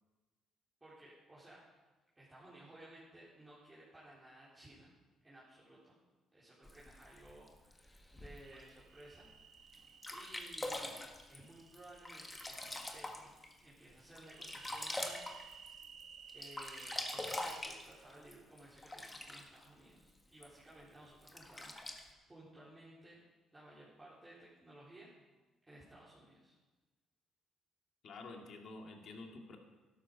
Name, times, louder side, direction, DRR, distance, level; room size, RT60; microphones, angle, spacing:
voice 1, 0.8-1.8 2.2-4.9 5.2-6.0 6.3-9.3 10.1-13.3 13.6-15.2 16.3-23.2 23.5-25.1 25.7-26.6, right 1 dB, 15° right, -9 dB, 4.3 m, -57 dB
Sink (filling or washing), 6.7-8.6 9.2-9.3 9.7-9.8 10.0-13.5 13.9-16.0 16.3-19.6 20.4-20.5 21.2-22.0, left 1 dB, 15° left, 1.7 m, -44 dB
sound 1, 8.4-10.5 11.4-13.0 14.2-17.6, right 7 dB, 65° right, 1.0 m, -56 dB
voice 2, 28.0-29.6, left 3 dB, 60° left, 3 dB, 2.3 m, -49 dB
12.5 x 12.0 x 5.4 m, 1.2 s
supercardioid pair, 75°, 0 cm